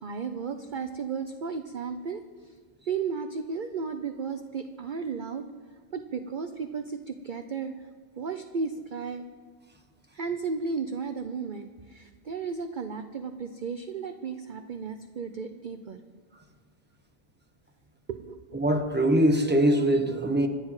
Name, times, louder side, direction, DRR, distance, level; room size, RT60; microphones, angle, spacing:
voice 1, 0.0-2.6 2.9-5.5 5.9-7.8 8.2-9.3 10.1-16.0 18.1-18.6, right 5 dB, 45° right, 7 dB, 0.7 m, -34 dB
voice 2, 18.5-20.5, right 1 dB, 10° right, 4 dB, 1.2 m, -22 dB
25.5 x 9.8 x 4.8 m, 1.5 s
omnidirectional pair, 1.5 m